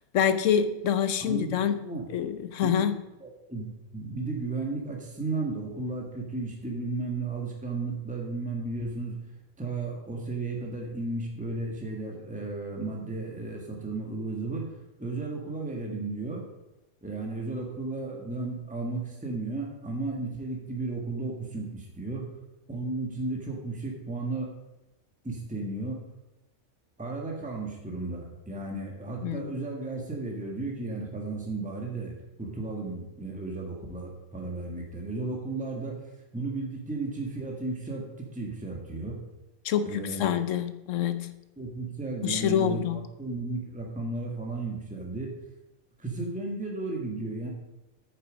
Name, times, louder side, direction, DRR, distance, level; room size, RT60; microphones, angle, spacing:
voice 1, 0.1-1.8 2.1-3.0 29.2-29.6 39.6-41.3 42.2-43.0, left 8 dB, 70° left, 1.0 m, -26 dB
voice 2, 1.2-2.1 2.6-2.9 3.2-9.2 9.6-14.6 15.0-16.4 17.0-22.3 22.7-24.5 25.2-26.0 27.0-39.2 39.8-40.3 41.6-45.3 46.0-47.5, right 3 dB, 5° right, 1.5 m, -34 dB
8.8 x 6.9 x 5.1 m
omnidirectional pair, 1.4 m